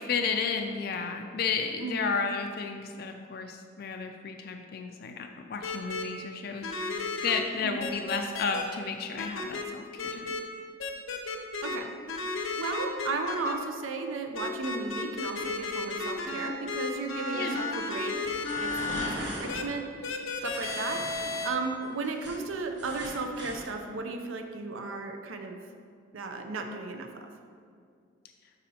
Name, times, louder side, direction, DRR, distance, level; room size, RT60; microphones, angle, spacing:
voice 1, 0.0-10.4 17.3-17.6, left 5 dB, 50° left, 4 dB, 0.3 m, -33 dB
sound 1, 5.6-6.0 6.6-7.4 7.8-8.6 9.2-9.6 10.0-10.4 10.8-11.8 12.1-13.5 14.3-19.1 19.5-19.6 20.0-21.5, left 3 dB, 80° left, 0.7 m, -33 dB
voice 2, 12.6-18.2 18.6-19.9 20.4-21.0 21.4-25.6 26.1-27.3, right 3 dB, 80° right, 5 dB, 0.6 m, -35 dB
sound 2, 18.2-19.6 20.4-21.4 21.8-23.6, right 1 dB, 55° right, 1.5 m, -39 dB
11.5 x 4.1 x 2.8 m, 2.2 s
head